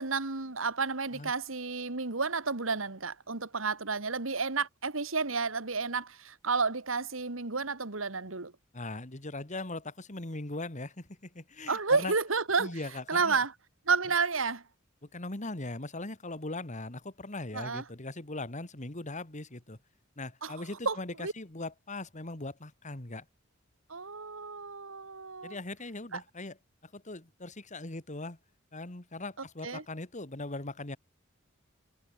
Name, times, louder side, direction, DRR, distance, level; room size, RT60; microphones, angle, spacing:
voice 1, 0.0-8.5 11.7-12.7 13.1-13.5 13.9-14.6 17.5-17.8 20.4-20.5 20.9-21.3 23.9-25.6 26.1-26.2 29.6-29.8, right 4 dB, 75° right, 2.1 m, -31 dB
voice 2, 8.7-12.1 12.6-13.4 15.0-19.8 20.2-23.3 25.4-26.6 26.8-28.4 28.7-31.0, left 2 dB, 35° left, 2.4 m, -40 dB
head